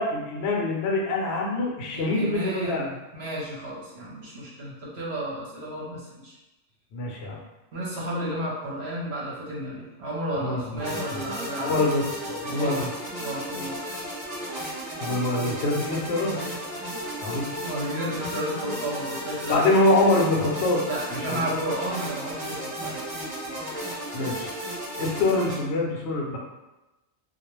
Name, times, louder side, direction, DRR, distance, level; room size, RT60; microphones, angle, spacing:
voice 1, 0.0-2.9 6.9-7.4 10.4-10.8 11.1-11.2 11.6-12.9 15.0-16.4 17.2-17.4 19.5-20.8 21.1-21.6 24.1-24.5 25.0-26.4, left 2 dB, 65° left, -1 dB, 0.8 m, -25 dB
voice 2, 1.9-6.3 7.7-11.9 12.5-12.8 13.2-14.0 17.6-19.6 20.9-23.0, right 1 dB, 60° right, -5 dB, 0.8 m, -32 dB
sound 1, 10.8-25.5, equal, 20° right, 0.7 m, -34 dB
2.3 x 2.1 x 3.0 m, 1.0 s
omnidirectional pair, 1.3 m